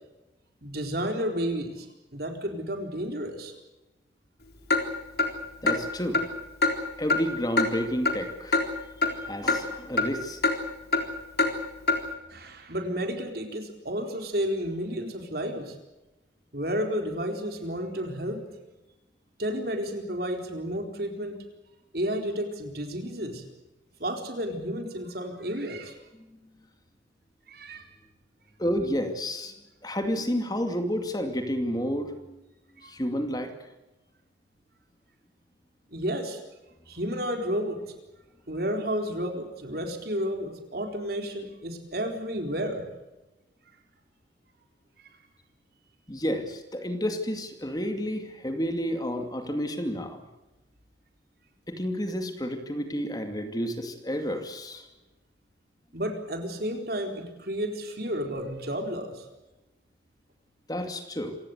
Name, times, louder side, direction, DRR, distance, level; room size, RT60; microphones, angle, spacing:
voice 1, 0.6-1.9 2.1-3.5 12.3-15.8 16.5-18.4 19.4-21.4 21.9-23.4 24.0-26.0 27.5-27.9 32.8-32.9 35.9-36.4 36.9-37.8 38.5-42.9 55.9-59.2, equal, 55° right, 4 dB, 4.2 m, -31 dB
Clock, 4.7-4.8 5.2-5.3 5.7-5.8 6.1-6.3 6.6-6.7 7.1-7.2 7.6-7.7 8.1-8.2 8.5-8.7 9.0-9.1 9.5-9.6 10.0-10.1 10.4-10.6 10.9-11.0 11.4-11.5 11.9-12.0, left 3 dB, 55° left, 3.7 m, -23 dB
voice 2, 5.6-6.2 7.0-8.6 9.2-10.4 28.6-29.5 29.8-32.4 32.8-33.5 46.1-50.2 51.7-54.9 60.7-61.4, equal, 20° left, 6 dB, 2.4 m, -30 dB
27.5 x 17.5 x 8.1 m, 1.0 s
head